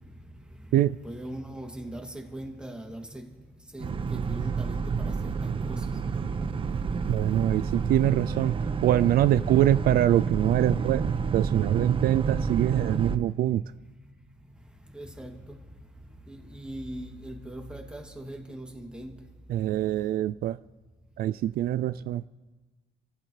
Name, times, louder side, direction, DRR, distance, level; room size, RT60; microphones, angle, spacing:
voice 1, 0.7-3.3 3.7-5.9 7.7-7.8 14.9-15.6 16.3-19.2, right 1 dB, 5° right, 2.7 m, -40 dB
Boat Water vehicle, 3.8-13.2, right 5 dB, 30° right, 0.9 m, -30 dB
voice 2, 7.1-13.6 19.5-20.6 21.2-22.2, right 12 dB, 60° right, 0.4 m, -24 dB
29.0 x 15.0 x 3.3 m
cardioid pair, 110°, 17 cm